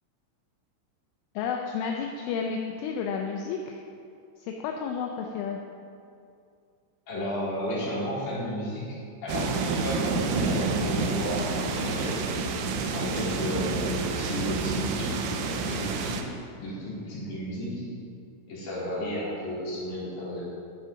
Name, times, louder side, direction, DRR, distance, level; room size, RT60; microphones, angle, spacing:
voice 1, 1.4-3.8 4.4-5.6, left 6 dB, 80° left, 2 dB, 3.1 m, -31 dB
voice 2, 7.1-12.2 12.9-16.2 16.6-17.8 18.5-20.4, left 1 dB, 45° left, -8 dB, 4.5 m, -33 dB
sound 1, 9.3-16.2, right 3 dB, 80° right, 2.7 m, -28 dB
11.0 x 10.0 x 5.2 m, 2.4 s
omnidirectional pair, 5.8 m